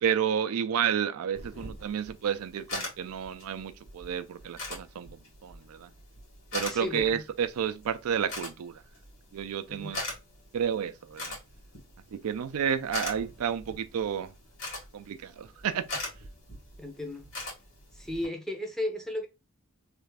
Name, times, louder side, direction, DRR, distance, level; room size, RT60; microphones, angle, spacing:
voice 1, 0.0-5.9 6.5-8.8 9.3-10.0 10.5-11.4 12.1-14.3 14.9-15.9, right 8 dB, 80° right, 0.4 m, -31 dB
sound 1, 1.3-18.3, left 2 dB, 65° left, 1.8 m, -42 dB
voice 2, 6.7-7.2 9.7-9.9 16.8-17.3 17.9-19.3, left 1 dB, ahead, 0.5 m, -34 dB
3.3 x 2.4 x 3.2 m
head